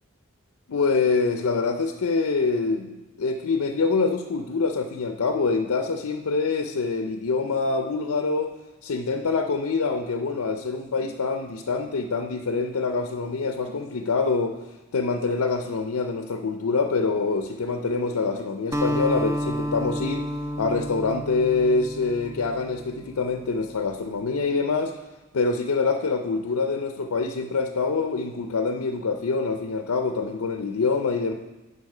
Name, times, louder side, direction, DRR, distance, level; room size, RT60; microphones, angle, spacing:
voice 1, 0.7-2.9 3.2-8.5 8.8-14.6 14.9-20.3 20.6-24.9 25.3-31.3, left 4 dB, 80° left, 6 dB, 0.5 m, -25 dB
Acoustic guitar, 18.7-23.2, equal, 15° right, 0.3 m, -30 dB
10.5 x 5.2 x 4.9 m, 1.1 s
head